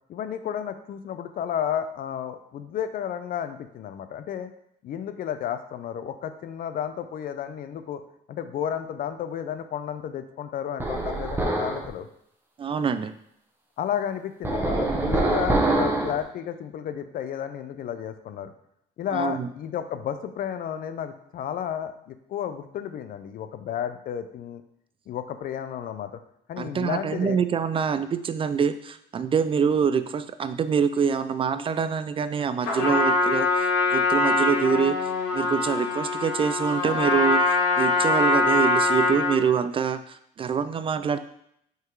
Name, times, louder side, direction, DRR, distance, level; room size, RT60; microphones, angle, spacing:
voice 1, 0.1-4.5 4.8-8.0 8.3-12.1 13.8-18.5 19.0-24.6 25.1-26.2 26.5-27.4, left 9 dB, 55° left, 10 dB, 0.6 m, -32 dB
sound 1, 10.8-11.9 14.4-16.2, right 2 dB, 15° right, 1.1 m, -24 dB
voice 2, 12.6-13.1 19.1-19.5 26.6-41.2, right 6 dB, 30° right, 11 dB, 0.3 m, -25 dB
Trumpet, 32.6-39.5, left 3 dB, 85° left, 1.6 m, -23 dB
5.4 x 3.8 x 4.6 m, 0.73 s
cardioid pair, 110°, 17 cm